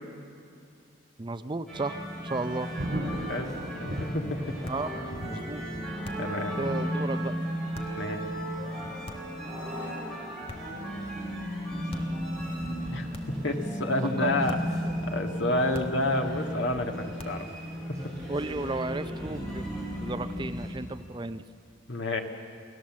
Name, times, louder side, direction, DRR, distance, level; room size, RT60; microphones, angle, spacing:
voice 1, 1.2-2.7 4.7-4.9 5.3-5.8 6.5-7.3 14.2-14.3 18.3-21.4, right 3 dB, 25° right, 11 dB, 0.6 m, -34 dB
sound 1, 1.7-20.7, equal, 5° left, 6.7 m, -35 dB
Thunder, 2.1-20.9 21.4-21.5, equal, 70° right, 5.5 m, -43 dB
voice 2, 3.8-4.4 6.2-6.6 7.9-8.2 12.9-13.1 13.4-14.6 15.0-17.5 21.9-22.2, left 1 dB, 75° left, 4 dB, 1.9 m, -29 dB
sound 2, 4.6-4.9 6.0-6.4 7.7-8.0 9.0-9.4 10.5-10.9 11.9-12.2 13.1-13.5 14.5-14.8 15.7-16.1 17.2-17.5, left 1 dB, 30° left, 1.4 m, -44 dB
28.5 x 18.0 x 7.5 m, 2.5 s
head